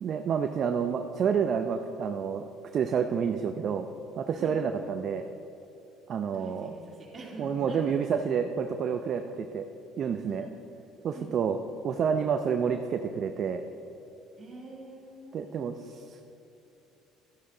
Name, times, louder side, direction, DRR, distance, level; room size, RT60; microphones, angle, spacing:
voice 1, 0.0-3.9 4.2-5.2 6.1-6.8 7.4-9.7 10.0-10.5 11.0-11.6 11.8-13.6 15.3-16.2, right 7 dB, 50° right, 6 dB, 0.5 m, -29 dB
voice 2, 6.3-7.9 10.3-10.6 11.1-11.3 14.4-15.6, right 2 dB, 35° right, -3 dB, 2.8 m, -45 dB
11.5 x 11.5 x 3.9 m, 2.9 s
supercardioid pair, 85°, 0 cm